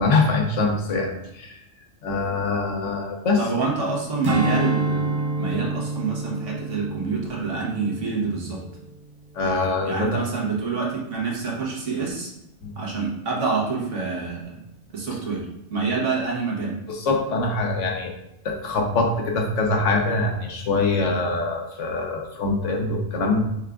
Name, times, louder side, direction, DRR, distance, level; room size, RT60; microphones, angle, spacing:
voice 1, 0.0-1.6 2.0-3.7 9.3-10.2 12.6-12.7 16.9-18.1 18.4-23.4, left 3 dB, 90° left, 2 dB, 1.2 m, -24 dB
voice 2, 3.4-8.6 9.8-12.3 12.7-14.6 14.9-16.7, right 4 dB, 90° right, -3 dB, 1.6 m, -27 dB
Strum, 4.2-8.9 9.3-9.5, right 2 dB, 35° right, 0.4 m, -28 dB
6.3 x 3.4 x 2.5 m, 0.88 s
omnidirectional pair, 1.2 m